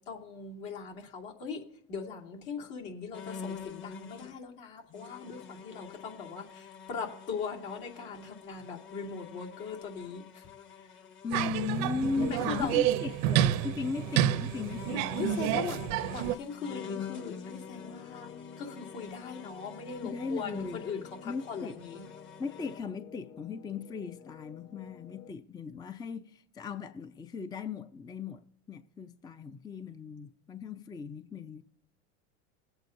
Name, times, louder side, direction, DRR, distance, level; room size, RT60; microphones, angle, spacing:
voice 1, 0.0-1.6 1.9-10.4 10.8-10.9 12.2-12.7 15.2-18.3 18.6-22.0, left 6 dB, 70° left, 2.8 m, -40 dB
sound 1, 3.1-4.3 4.9-22.8, left 6 dB, 35° left, 1.1 m, -46 dB
voice 2, 11.2-15.1 15.5-16.0 20.0-20.8 21.2-21.8 22.4-31.6, left 5 dB, 10° left, 0.4 m, -37 dB
sound 2, 11.3-16.3, right 12 dB, 60° right, 0.6 m, -29 dB
sound 3, 16.7-25.3, left 7 dB, 50° left, 1.9 m, -51 dB
20.5 x 7.9 x 2.6 m
hypercardioid pair, 95°, 36 cm